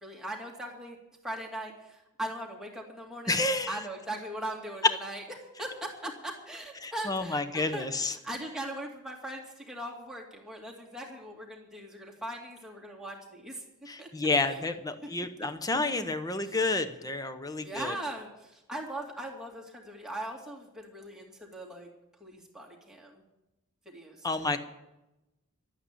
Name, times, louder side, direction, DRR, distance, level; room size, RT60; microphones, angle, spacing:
voice 1, 0.0-1.0 1.2-3.4 3.7-5.2 5.6-13.6 14.0-14.1 14.4-14.6 15.0-15.1 15.7-15.9 16.4-16.6 17.6-21.9 22.2-23.2 23.9-24.6, right 1 dB, 5° right, -3 dB, 2.5 m, -40 dB
voice 2, 3.3-3.8 6.8-8.2 13.9-17.9 24.2-24.6, left 2 dB, 15° left, 10 dB, 0.8 m, -30 dB
12.5 x 8.9 x 9.7 m, 0.96 s
head